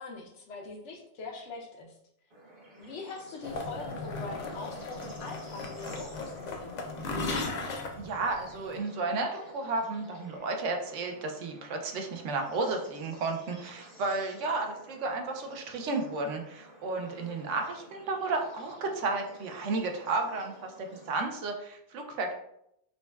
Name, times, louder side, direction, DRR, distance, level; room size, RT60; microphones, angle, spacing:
voice 1, 0.0-1.9 2.8-6.8, left 3 dB, 75° left, 2 dB, 1.0 m, -42 dB
Bird / Insect / Frog, 2.3-21.2, right 1 dB, 50° right, 1.3 m, -53 dB
sound 1, 3.4-8.8, left 3 dB, 60° left, 0.4 m, -37 dB
voice 2, 8.0-22.3, right 3 dB, 80° right, 4 dB, 1.0 m, -33 dB
5.1 x 2.2 x 2.2 m, 0.75 s
omnidirectional pair, 1.2 m